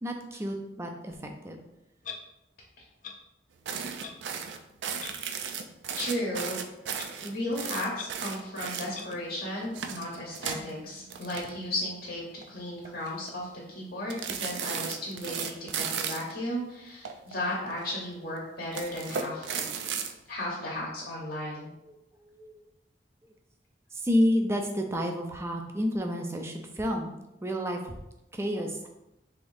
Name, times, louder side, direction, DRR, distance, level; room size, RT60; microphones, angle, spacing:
voice 1, 0.0-1.6 19.3-19.4 21.8-22.6 23.2-23.3 23.9-28.0 28.3-28.9, equal, 15° right, 3 dB, 0.4 m, -30 dB
Clock, 2.0-2.2 3.0-3.1 4.0-4.1 5.0-5.1 6.0-6.1 7.0-7.1 8.0-8.1 8.9-9.1, left 6 dB, 50° left, 0.4 m, -40 dB
buttering toast, 3.7-9.2 9.6-11.9 12.2-12.4 12.8-13.3 14.1-16.3 17.1-17.9 18.6-20.1, right 7 dB, 85° right, 0.4 m, -35 dB
voice 2, 6.0-6.6 7.2-12.2 12.5-19.6 20.3-21.7, left 1 dB, 65° left, -4 dB, 0.9 m, -35 dB
3.6 x 3.5 x 2.6 m, 0.88 s
head